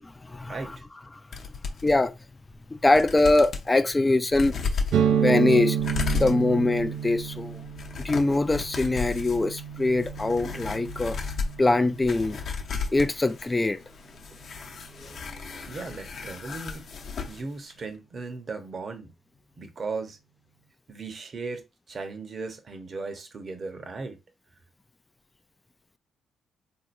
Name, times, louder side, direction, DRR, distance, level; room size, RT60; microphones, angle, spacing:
voice 1, 0.2-0.6 1.8-2.1 2.7-4.5 5.1-5.8 6.1-7.6 8.0-11.2 11.6-12.4 12.9-13.8 15.0-15.6, left 2 dB, 20° left, 0.3 m, -23 dB
sound 1, 1.3-2.0 2.5-2.6 2.8-3.7 4.3-17.4 17.7-17.8, left 5 dB, 55° left, 0.8 m, -35 dB
sound 2, 4.9-12.5, right 8 dB, 75° right, 0.4 m, -30 dB
voice 2, 15.6-16.8 17.2-19.1 19.6-20.2 20.9-24.2, right 4 dB, 45° right, 0.9 m, -37 dB
3.7 x 2.8 x 2.6 m
cardioid pair, 90°, 0 cm